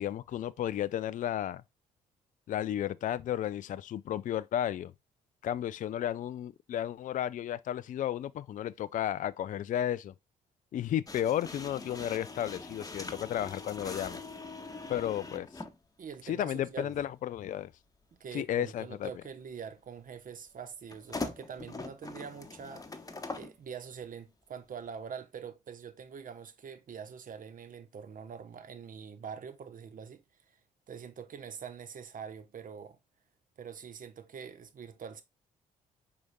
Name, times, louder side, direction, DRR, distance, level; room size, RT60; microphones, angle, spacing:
voice 1, 0.0-1.6 2.5-4.9 5.4-10.1 10.7-14.2 14.9-15.6 16.2-17.7 18.3-19.1, left 11 dB, 45° left, 0.4 m, -33 dB
sound 1, 11.1-15.8 16.9-17.1 20.9-23.6, left 3 dB, 20° left, 1.0 m, -42 dB
voice 2, 16.0-17.0 18.2-22.9 23.3-30.6 30.9-33.0 33.6-35.2, right 7 dB, 45° right, 1.0 m, -44 dB
5.0 x 4.8 x 2.2 m
hypercardioid pair, 45°, 19 cm